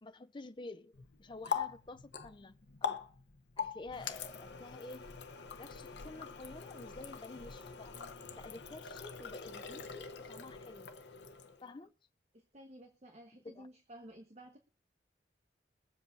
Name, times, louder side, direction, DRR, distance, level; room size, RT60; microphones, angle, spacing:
voice 1, 0.0-3.0 3.6-5.1 5.6-8.0 8.4-10.9 11.6-11.9 13.4-13.7, left 3 dB, 25° left, 0.6 m, -50 dB
Water tap faucet, 0.9-11.7, left 6 dB, 75° left, 1.0 m, -43 dB
voice 2, 12.3-14.6, right 1 dB, 40° right, 1.3 m, -54 dB
23.0 x 7.8 x 2.7 m
head